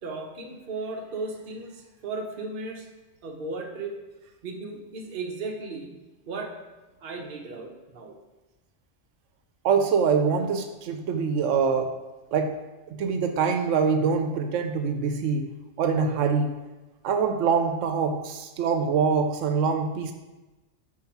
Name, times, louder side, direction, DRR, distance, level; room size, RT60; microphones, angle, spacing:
voice 1, 0.0-2.9 3.2-4.0 4.4-6.0 6.3-6.6 7.0-8.2, right 3 dB, 50° right, 2 dB, 0.9 m, -35 dB
voice 2, 9.6-11.9 12.3-12.6 12.9-15.5 15.8-16.5 17.0-20.1, right 5 dB, 85° right, 6 dB, 0.9 m, -24 dB
5.7 x 4.6 x 4.5 m, 1.1 s
omnidirectional pair, 1.2 m